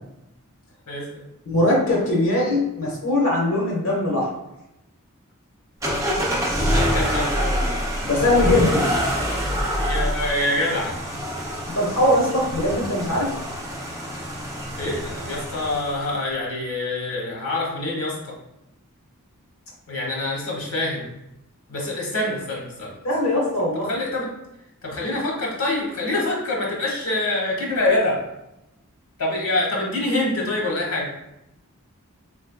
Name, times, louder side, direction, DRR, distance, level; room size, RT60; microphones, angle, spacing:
voice 1, 0.9-1.2 6.7-7.3 9.8-10.9 14.8-18.3 19.9-21.1 21.7-22.9 23.8-24.3 24.8-28.2 29.2-31.1, left 2 dB, 85° left, -2 dB, 0.9 m, -25 dB
voice 2, 1.5-4.3 8.0-8.8 11.7-13.3 23.0-23.9, left 1 dB, 65° left, -4 dB, 1.1 m, -21 dB
sound 1, 5.8-16.0, equal, 15° right, 0.5 m, -26 dB
3.5 x 3.2 x 2.2 m, 0.87 s
head